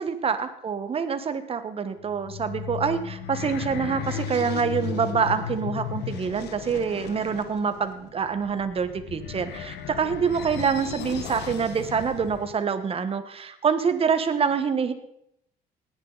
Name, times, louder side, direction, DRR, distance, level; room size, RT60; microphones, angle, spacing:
voice 1, 0.0-14.9, right 6 dB, 35° right, 10 dB, 1.3 m, -26 dB
sound 1, 2.0-12.5, left 8 dB, 75° left, 1.4 m, -35 dB
18.5 x 10.5 x 4.1 m, 0.77 s
cardioid pair, 110°, 17 cm